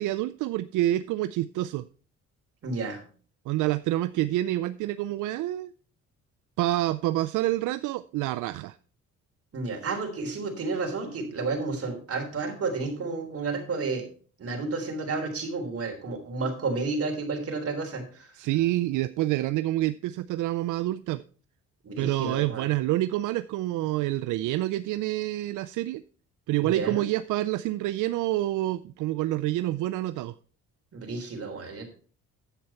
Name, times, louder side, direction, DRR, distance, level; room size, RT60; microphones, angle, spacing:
voice 1, 0.0-1.8 3.5-5.7 6.6-8.8 18.3-21.2 22.0-26.0 26.5-30.3, right 15 dB, 85° right, 13 dB, 0.5 m, -27 dB
voice 2, 2.6-3.0 9.5-14.0 14.4-18.3 21.8-22.7 26.6-27.0 30.9-31.8, right 3 dB, 50° right, 4 dB, 3.6 m, -31 dB
10.0 x 8.1 x 4.3 m, 0.42 s
cardioid pair, 90°, 30 cm